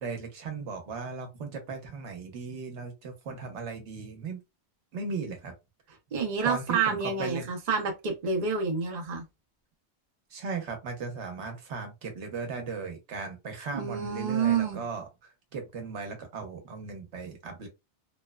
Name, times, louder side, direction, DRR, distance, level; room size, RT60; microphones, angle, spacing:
voice 1, 0.0-4.4 4.9-5.5 6.4-7.5 10.3-17.7, right 4 dB, 85° right, 1.1 m, -37 dB
voice 2, 6.1-9.2 13.7-14.8, right 5 dB, 45° right, 0.7 m, -28 dB
3.0 x 2.1 x 2.2 m
omnidirectional pair, 1.1 m